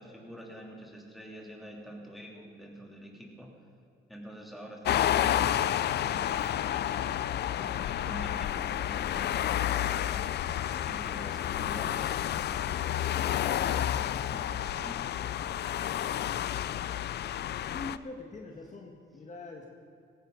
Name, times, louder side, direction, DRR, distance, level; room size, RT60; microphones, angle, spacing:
voice 1, 0.0-3.5 4.1-6.3 6.6-7.3 7.6-10.3 10.8-15.0, equal, ahead, -2 dB, 3.4 m, -47 dB
sound 1, 4.9-18.0, left 11 dB, 55° left, 0.5 m, -30 dB
voice 2, 17.7-19.7, left 2 dB, 35° left, 0 dB, 1.7 m, -43 dB
17.5 x 16.0 x 4.1 m, 2.3 s
cardioid pair, 90°, 20 cm